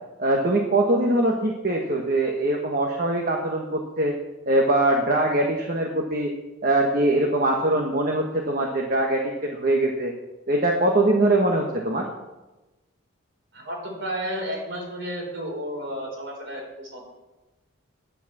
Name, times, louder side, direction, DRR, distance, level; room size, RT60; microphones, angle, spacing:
voice 1, 0.2-4.1 4.5-6.3 6.6-10.1 10.5-12.1, right 1 dB, 45° right, 1 dB, 1.2 m, -22 dB
voice 2, 13.5-17.0, equal, 65° right, -1 dB, 4.6 m, -32 dB
9.9 x 9.2 x 7.3 m, 1.1 s
head